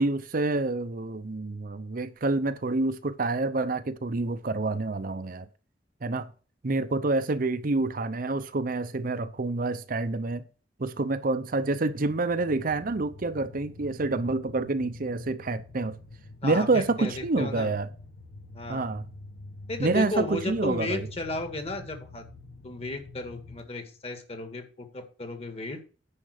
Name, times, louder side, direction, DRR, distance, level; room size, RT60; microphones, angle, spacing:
voice 1, 0.0-5.5 6.0-6.3 6.6-10.4 10.8-16.0 16.4-17.9 18.7-19.0 19.8-21.1, right 3 dB, 50° right, 0.7 m, -27 dB
sound 1, 11.9-23.6, left 2 dB, 70° left, 1.5 m, -46 dB
voice 2, 16.4-17.7 18.5-18.9 19.7-22.2 22.6-25.8, left 2 dB, 35° left, 2.0 m, -34 dB
9.9 x 5.4 x 6.5 m
head